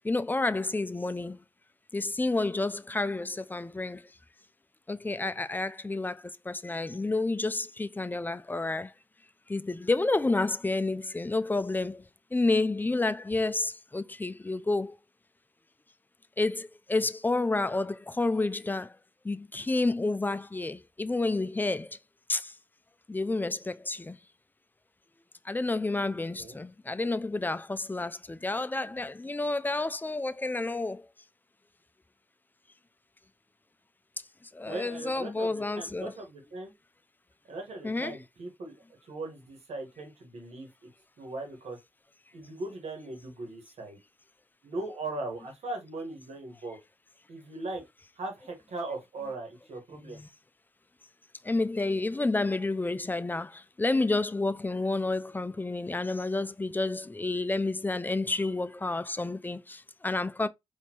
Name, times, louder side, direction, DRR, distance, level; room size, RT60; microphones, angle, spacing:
voice 1, 0.0-1.4 1.9-4.0 4.9-8.9 9.5-12.0 12.3-15.0 16.4-19.0 19.2-22.0 22.3-22.5 23.1-24.2 25.4-31.1 34.5-36.1 37.8-38.2 50.0-50.3 51.4-60.5, left 2 dB, 15° left, 0.5 m, -30 dB
voice 2, 26.0-26.6 34.6-36.7 37.5-38.8 39.0-40.7 41.2-41.8 42.3-44.0 44.6-46.8 47.3-47.8 48.2-50.2, right 2 dB, 75° right, 1.5 m, -39 dB
4.3 x 2.9 x 2.9 m
supercardioid pair, 45°, 11 cm